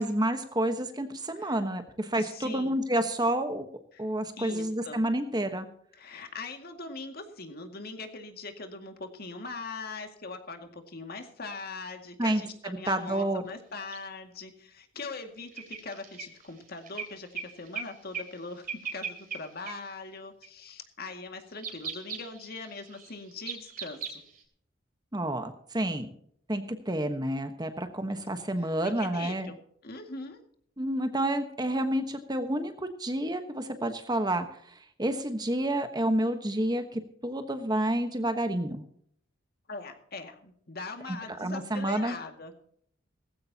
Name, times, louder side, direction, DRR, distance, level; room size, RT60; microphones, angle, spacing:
voice 1, 0.0-3.7 4.0-5.7 12.2-13.4 25.1-26.1 26.5-29.5 30.8-34.5 35.0-38.8 41.1-42.2, right 1 dB, 20° right, 8 dB, 1.2 m, -29 dB
voice 2, 2.2-2.8 3.9-4.1 4.4-5.0 6.0-24.2 28.6-29.6 29.8-30.4 39.7-42.5, left 3 dB, 50° left, 6 dB, 2.2 m, -41 dB
sound 1, 13.9-14.0 15.4-17.9 18.1-18.4 18.6-19.4 19.7-19.8 20.4-20.7 21.6-24.4, right 6 dB, 45° right, 3.5 m, -39 dB
18.0 x 15.5 x 2.9 m, 0.64 s
head